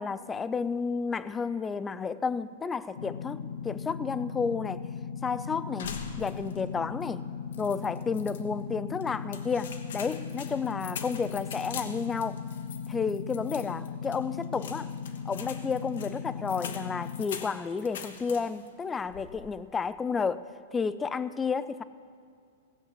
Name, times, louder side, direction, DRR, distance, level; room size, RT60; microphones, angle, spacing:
voice 1, 0.0-4.8 5.2-7.2 7.6-12.4 12.9-14.9 15.3-20.5 20.7-21.8, left 5 dB, 10° left, 16 dB, 0.3 m, -31 dB
sound 1, 3.0-17.2, left 6 dB, 85° left, 0.6 m, -38 dB
sound 2, 5.8-6.7 7.0-7.1 7.5-8.4 9.0-18.7 19.0-19.6, left 7 dB, 70° left, 1.2 m, -43 dB
16.5 x 7.4 x 8.2 m, 2.3 s
supercardioid pair, 160°, 0 cm